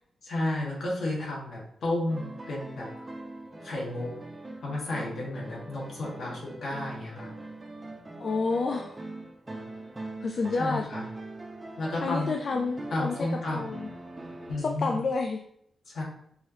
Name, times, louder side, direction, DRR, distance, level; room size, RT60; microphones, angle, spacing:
voice 1, 0.2-2.9 3.6-4.1 4.6-7.3 10.6-11.0 11.8-12.3 12.9-13.7 14.5-15.0 15.9-16.0, left 2 dB, 65° left, -3 dB, 1.4 m, -32 dB
sound 1, 2.1-14.6, right 2 dB, 20° right, 0.5 m, -42 dB
voice 2, 8.2-9.0 10.2-10.9 12.0-13.3 13.5-13.9 14.6-15.4, left 4 dB, 50° left, 3 dB, 0.3 m, -29 dB
4.7 x 2.7 x 3.0 m, 0.70 s
wide cardioid pair, 130°, 0 cm